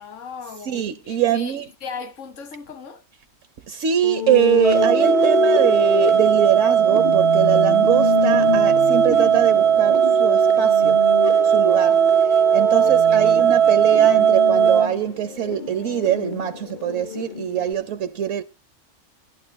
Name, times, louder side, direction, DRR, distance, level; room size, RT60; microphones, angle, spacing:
voice 1, 0.0-3.0 12.8-13.5, left 5 dB, 70° left, 1.6 m, -38 dB
voice 2, 0.6-1.7 3.7-11.1 11.4-18.4, right 11 dB, 75° right, 1.1 m, -23 dB
sound 1, 4.0-17.7, left 8 dB, 50° left, 0.7 m, -27 dB
sound 2, 4.6-14.9, right 8 dB, 40° right, 0.5 m, -17 dB
11.5 x 11.0 x 3.1 m
omnidirectional pair, 1.4 m